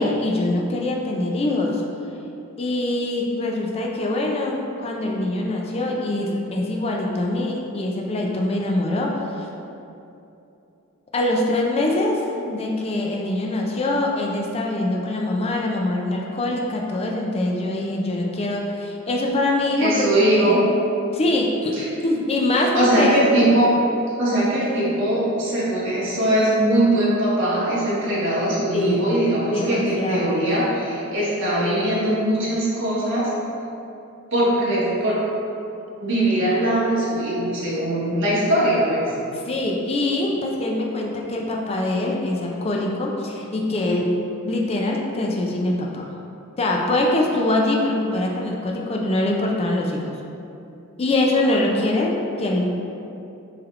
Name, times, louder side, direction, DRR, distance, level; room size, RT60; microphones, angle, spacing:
voice 1, 0.0-1.8 2.6-9.1 9.4-9.5 11.1-20.6 21.1-23.2 28.7-29.1 29.5-30.4 39.3-44.1 44.4-46.1 46.6-50.1 51.0-52.1 52.4-52.7, left 2 dB, 30° left, 0 dB, 0.4 m, -23 dB
voice 2, 19.8-20.6 21.8-21.9 22.6-23.7 24.2-33.3 34.3-35.2 36.0-39.1, right 1 dB, 60° right, -9 dB, 1.4 m, -21 dB
6.0 x 3.2 x 2.4 m, 2.8 s
head